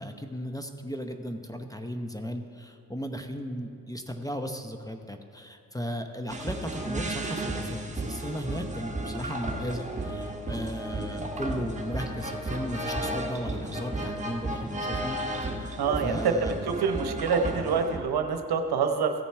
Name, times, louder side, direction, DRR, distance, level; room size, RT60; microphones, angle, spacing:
voice 1, 0.0-16.6, equal, 10° left, 6 dB, 0.8 m, -36 dB
sound 1, 6.3-18.0, right 1 dB, 15° right, 1.5 m, -33 dB
voice 2, 15.8-19.1, right 5 dB, 65° right, 6 dB, 1.0 m, -26 dB
15.5 x 7.0 x 4.5 m, 2.5 s
supercardioid pair, 50°, 41 cm